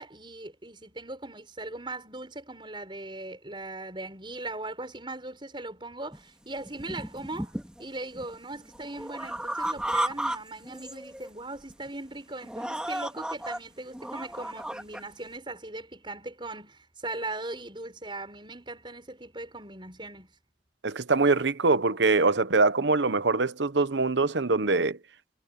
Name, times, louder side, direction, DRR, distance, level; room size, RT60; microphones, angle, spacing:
voice 1, 0.0-20.3, right 2 dB, 25° right, 6.8 m, -39 dB
sound 1, 6.1-6.2 6.7-7.8 8.1-10.4 10.6-11.3 11.7-11.9 12.4-13.6 13.9-15.0, right 1 dB, 5° right, 2.3 m, -33 dB
voice 2, 20.8-25.0, right 3 dB, 75° right, 1.0 m, -23 dB
head